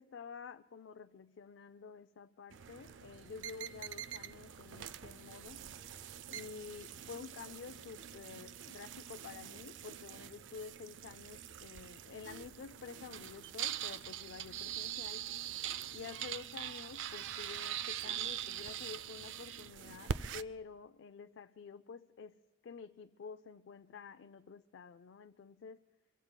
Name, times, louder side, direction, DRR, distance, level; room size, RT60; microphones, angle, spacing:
voice 1, 0.0-5.7 6.3-15.3 15.9-25.8, left 5 dB, 75° left, 9 dB, 0.4 m, -50 dB
sound 1, 2.5-20.4, right 9 dB, 80° right, 0.4 m, -43 dB
25.0 x 23.5 x 2.2 m, 1.2 s
head